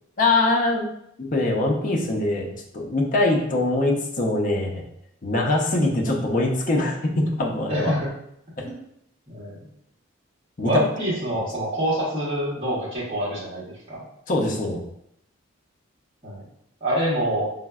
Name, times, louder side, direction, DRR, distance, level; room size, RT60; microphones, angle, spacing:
voice 1, 0.2-0.9 1.2-4.8 5.2-7.9 8.6-8.7 10.6-10.8 14.3-14.8, left 2 dB, 40° left, -1 dB, 0.5 m, -23 dB
voice 2, 7.7-8.1 8.6-8.7 9.3-9.7 10.6-14.0 16.2-16.5 16.8-17.5, equal, 30° right, -7 dB, 0.9 m, -26 dB
4.4 x 2.0 x 2.2 m, 0.75 s
head